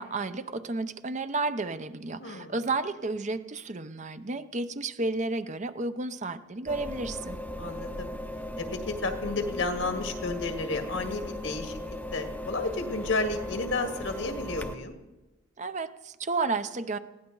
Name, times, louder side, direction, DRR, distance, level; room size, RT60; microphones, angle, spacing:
voice 1, 0.0-7.4 15.6-17.0, right 3 dB, 40° right, 11 dB, 0.7 m, -32 dB
voice 2, 2.2-2.5 7.6-8.1 8.6-11.8 12.1-15.0, left 3 dB, 80° left, 5 dB, 1.9 m, -32 dB
sound 1, 6.7-14.7, left 1 dB, 10° left, 0.7 m, -37 dB
20.5 x 16.5 x 3.9 m, 1.1 s
head